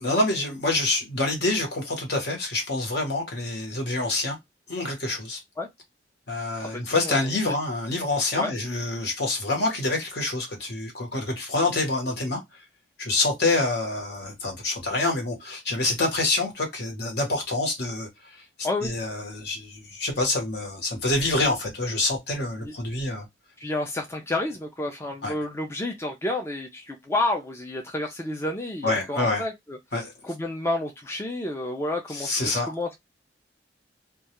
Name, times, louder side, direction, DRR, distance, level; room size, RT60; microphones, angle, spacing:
voice 1, 0.0-4.4 4.7-5.4 6.3-12.4 13.0-18.4 18.8-23.3 25.2-25.3 28.8-29.4 29.9-30.1 32.1-32.7, left 2 dB, 60° left, 1.0 m, -26 dB
voice 2, 6.6-7.6 8.3-8.5 18.6-18.9 22.6-22.7 23.6-29.8 30.2-33.0, left 2 dB, 15° left, 0.3 m, -30 dB
2.2 x 2.2 x 2.8 m
head